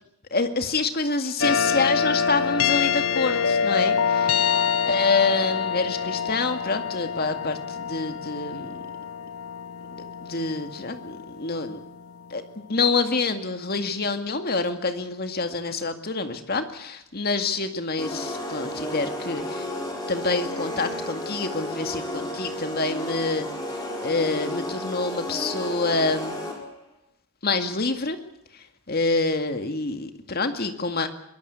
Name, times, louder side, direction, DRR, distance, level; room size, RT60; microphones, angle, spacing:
voice 1, 0.3-4.4 4.9-8.8 9.9-11.8 12.3-12.4 12.7-19.7 20.1-26.4 27.4-28.2 28.9-31.1, left 3 dB, 45° left, 7 dB, 2.1 m, -27 dB
sound 1, 1.4-12.1, left 6 dB, 70° left, 1.1 m, -26 dB
sound 2, 18.0-26.7, left 1 dB, 20° left, 5.1 m, -32 dB
23.0 x 20.0 x 8.2 m, 0.79 s
head